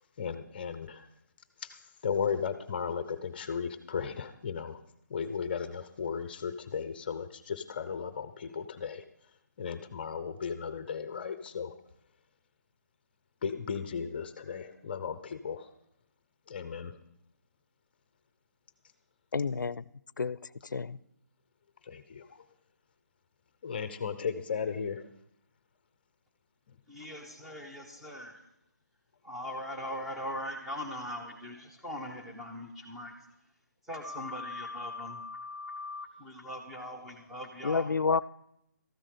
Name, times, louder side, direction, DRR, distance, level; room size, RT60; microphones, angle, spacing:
voice 1, 0.2-1.1 1.6-4.8 5.1-9.0 9.6-11.8 13.4-15.7 16.5-17.0 21.8-22.4 23.6-25.1 26.7-26.8, left 6 dB, 30° left, 11 dB, 0.7 m, -35 dB
voice 2, 19.3-19.8 20.2-21.0 37.6-38.2, left 5 dB, 80° left, 20 dB, 0.5 m, -29 dB
voice 3, 26.9-28.5 29.2-33.3 33.8-37.9, left 1 dB, 5° right, 0 dB, 1.1 m, -40 dB
13.5 x 8.8 x 6.7 m, 0.77 s
figure-of-eight pair, 160°, 10 cm